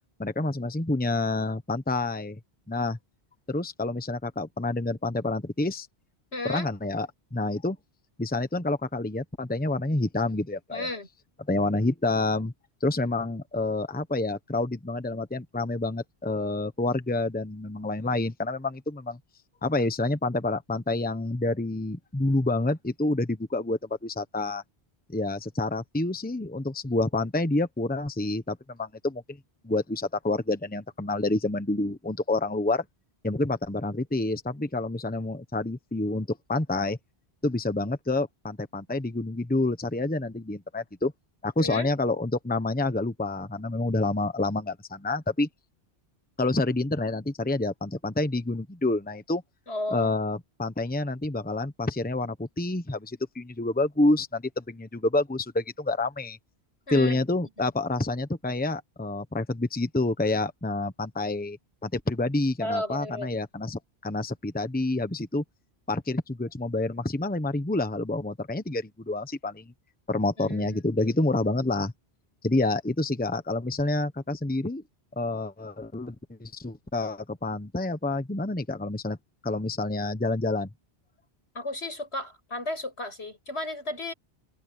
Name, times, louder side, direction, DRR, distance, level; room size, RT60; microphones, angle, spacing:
voice 1, 0.2-2.4 2.7-3.0 3.5-5.9 6.4-7.8 8.2-10.9 11.5-12.5 12.8-19.2 19.6-24.6 25.1-29.4 29.6-32.8 33.2-37.0 37.4-41.1 41.4-45.5 46.4-49.4 49.9-56.4 56.9-61.6 61.8-65.4 65.9-69.7 70.1-71.9 72.4-74.8 75.2-79.2 79.4-80.7, left 2 dB, 10° left, 1.0 m, -28 dB
voice 2, 6.3-6.7 10.7-11.1 41.6-41.9 49.7-50.1 56.9-57.2 57.6-57.7 62.6-63.3 70.4-70.8 81.5-84.1, left 1 dB, 80° left, 7.4 m, -33 dB
omnidirectional pair, 1.1 m